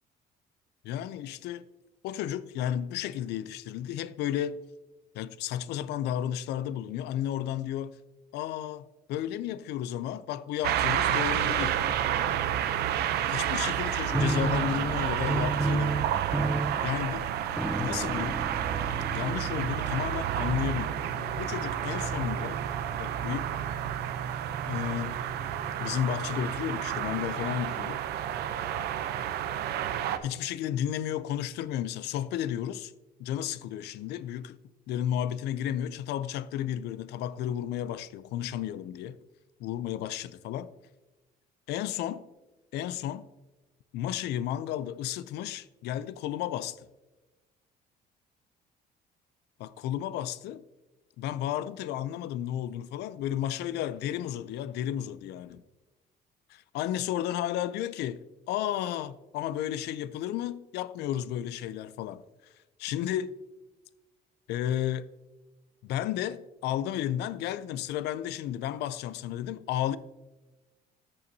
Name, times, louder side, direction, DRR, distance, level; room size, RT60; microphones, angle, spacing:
voice 1, 0.8-1.6 2.0-4.6 5.1-8.0 8.3-11.8 13.3-16.0 16.8-17.3 17.8-18.4 19.1-21.0 21.4-22.6 23.0-23.5 24.7-25.2 25.8-28.0 29.7-29.8 30.2-32.9 33.2-34.6 34.9-39.2 39.6-40.7 41.7-42.3 42.7-43.2 43.9-46.9 49.6-50.6 51.2-55.6 56.5-58.2 58.5-62.2 62.8-63.4 64.5-65.1 65.8-70.0, left 11 dB, 80° left, 0.5 m, -33 dB
sound 1, 10.6-30.2, right 10 dB, 75° right, 0.7 m, -30 dB
sound 2, 14.1-20.6, right 2 dB, ahead, 0.3 m, -32 dB
13.5 x 6.8 x 2.8 m
cardioid pair, 110°, 17 cm